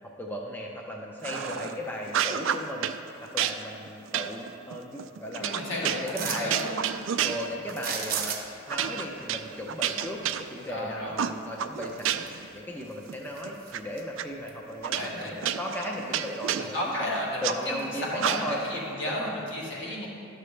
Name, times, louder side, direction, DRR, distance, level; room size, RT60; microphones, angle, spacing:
voice 1, 0.0-2.9 3.2-6.6 7.2-8.4 8.7-11.2 11.4-17.1 17.4-18.6 19.1-19.4, equal, 10° left, -1 dB, 0.5 m, -36 dB
sound 1, 1.2-1.7 2.1-3.0 3.4-7.8 8.1-8.3 8.7-10.8 11.2-12.5 12.8-13.8 14.2-14.3 14.8-17.6 18.2-18.7, right 9 dB, 70° right, 0.3 m, -31 dB
voice 2, 1.3-1.8 5.3-6.8 10.7-11.3 14.9-15.4 16.5-20.1, equal, 65° left, -4 dB, 1.7 m, -33 dB
sound 2, 6.1-6.7 7.7-8.7 11.3-11.4 11.9-12.6 12.9-14.0 14.5-14.6, right 7 dB, 45° right, 0.7 m, -34 dB
12.0 x 6.6 x 3.2 m, 2.6 s
head